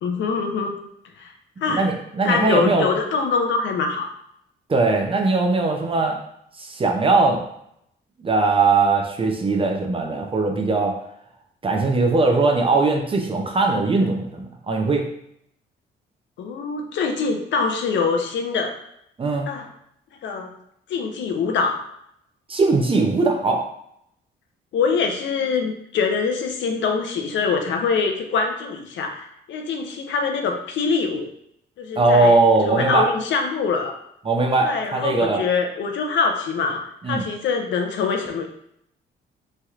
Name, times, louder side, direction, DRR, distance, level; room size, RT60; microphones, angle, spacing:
voice 1, 0.0-0.8 1.2-1.3 1.6-1.9 2.2-4.1 16.4-18.7 19.5-19.7 20.2-20.5 20.9-21.8 24.7-31.3 31.8-32.3 32.6-33.9 34.6-38.5, left 5 dB, 70° left, 4 dB, 0.5 m, -24 dB
voice 2, 1.7-2.9 4.7-6.2 6.6-7.4 8.2-10.9 11.6-15.0 19.2-19.5 22.5-23.6 32.0-33.1 34.2-35.4 37.0-37.2, right 3 dB, 25° right, 2 dB, 0.5 m, -20 dB
3.2 x 2.8 x 2.4 m, 0.74 s
cardioid pair, 90°, 20 cm